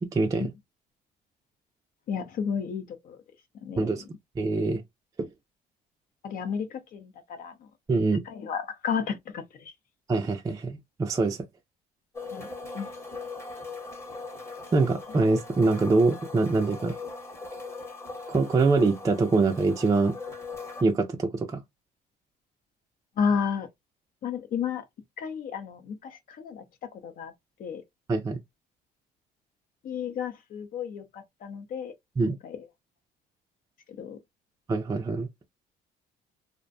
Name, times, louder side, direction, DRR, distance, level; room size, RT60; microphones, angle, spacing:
voice 1, 0.0-0.5 3.8-4.0 4.4-4.8 5.2-5.3 7.9-8.2 10.1-11.5 14.7-17.0 18.3-20.2 20.8-21.6 28.1-28.4 32.2-32.4 34.7-35.3, right 3 dB, 20° right, 0.4 m, -24 dB
voice 2, 2.1-3.2 3.6-3.9 6.2-7.5 8.3-9.4 12.3-12.5 12.7-12.9 23.2-23.7 24.2-24.8 25.2-26.6 27.0-27.3 27.6-27.8 29.8-31.9 32.2-32.6 34.0-34.2, left 6 dB, 55° left, 0.6 m, -32 dB
sound 1, 12.1-20.8, left 3 dB, 15° left, 0.9 m, -40 dB
2.5 x 2.1 x 2.5 m
cardioid pair, 110°, 17 cm